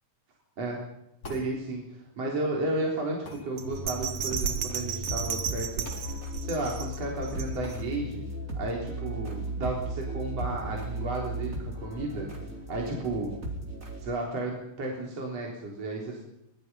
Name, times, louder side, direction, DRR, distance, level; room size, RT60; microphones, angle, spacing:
voice 1, 0.6-0.9 1.3-8.2 8.5-12.3 12.7-13.3 14.0-16.2, right 2 dB, 45° right, -1 dB, 4.8 m, -33 dB
sound 1, 1.2-1.5 3.2-3.5 5.8-6.1 6.4-6.5 7.6-7.8, left 3 dB, 45° left, 6.1 m, -43 dB
sound 2, 3.6-14.0, right 1 dB, 20° right, 4.9 m, -36 dB
Bell, 3.6-7.9 8.3-8.4, right 8 dB, 65° right, 3.3 m, -34 dB
25.5 x 21.0 x 5.6 m, 0.86 s
omnidirectional pair, 3.9 m